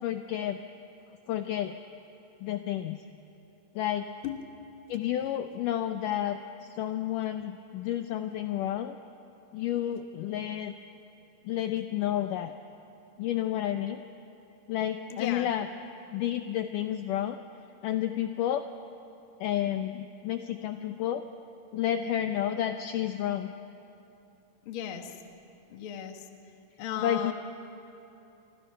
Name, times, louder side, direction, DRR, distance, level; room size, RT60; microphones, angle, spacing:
voice 1, 0.0-0.6 1.3-1.8 2.4-3.0 3.8-4.1 4.9-9.0 9.5-10.7 11.5-12.5 13.2-14.0 14.7-15.7 16.1-17.4 17.8-18.7 19.4-21.2 21.7-23.5 27.0-27.3, left 11 dB, 80° left, 8 dB, 2.0 m, -30 dB
voice 2, 15.1-15.5 24.6-25.2 25.7-26.3 26.8-27.3, left 9 dB, 55° left, 5 dB, 1.5 m, -36 dB
28.0 x 26.0 x 5.7 m, 2.8 s
omnidirectional pair, 4.4 m